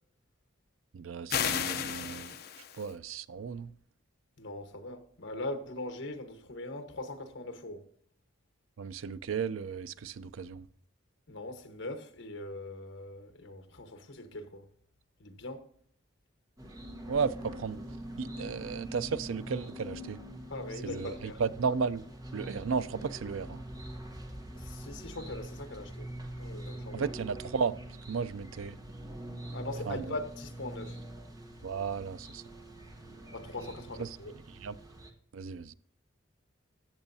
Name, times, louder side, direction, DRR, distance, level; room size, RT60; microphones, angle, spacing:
voice 1, 0.9-3.7 8.8-10.7 17.1-17.9 18.2-20.2 20.8-22.0 22.3-23.6 26.9-27.8 28.1-28.8 29.9-30.2 31.6-32.4 34.0-34.2 34.5-34.8 35.3-35.7, right 5 dB, 80° right, 0.4 m, -34 dB
sound 1, 1.3-2.9, left 8 dB, 50° left, 0.6 m, -33 dB
voice 2, 4.4-7.9 11.3-14.7 15.2-15.6 20.5-21.4 24.5-26.1 26.4-27.0 29.5-31.0 33.3-34.3, left 2 dB, 70° left, 1.3 m, -41 dB
sound 2, 16.6-35.1, right 1 dB, 20° right, 1.1 m, -44 dB
14.0 x 7.9 x 2.7 m
head